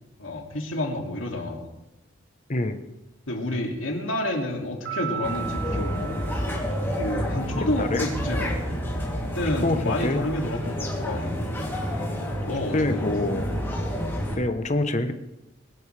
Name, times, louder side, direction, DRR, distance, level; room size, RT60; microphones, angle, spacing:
voice 1, 0.2-1.7 3.3-6.2 6.9-8.6 9.2-11.8 12.4-13.5, left 1 dB, 75° left, 0 dB, 2.6 m, -30 dB
Piano, 4.8-7.4, right 11 dB, 85° right, 6.0 m, -36 dB
sound 1, 5.2-14.4, equal, 10° left, 2.9 m, -29 dB
voice 2, 7.6-8.1 9.6-10.2 12.7-13.5 14.4-15.1, left 2 dB, 35° left, 9 dB, 1.0 m, -25 dB
22.0 x 12.5 x 3.4 m, 0.99 s
head